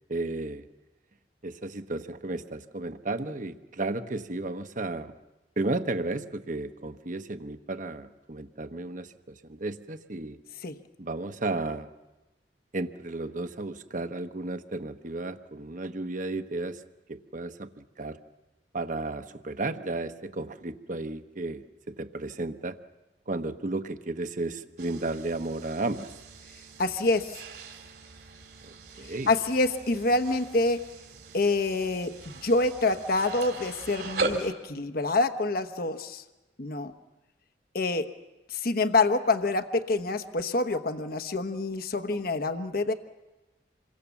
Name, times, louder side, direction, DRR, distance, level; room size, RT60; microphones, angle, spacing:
voice 1, 0.1-0.6 1.4-5.1 5.6-10.4 11.0-11.9 12.7-16.8 17.1-17.7 18.0-18.2 18.7-22.8 23.3-26.1 28.6-29.3, right 2 dB, 45° right, 9 dB, 1.1 m, -33 dB
sound 1, 24.8-34.5, right 3 dB, 65° right, 3.7 m, -39 dB
voice 2, 26.8-27.4 29.3-30.8 31.3-36.2 36.6-36.9 37.7-38.1 38.5-42.9, left 2 dB, 55° left, 9 dB, 1.1 m, -26 dB
27.0 x 23.0 x 7.2 m, 1.1 s
head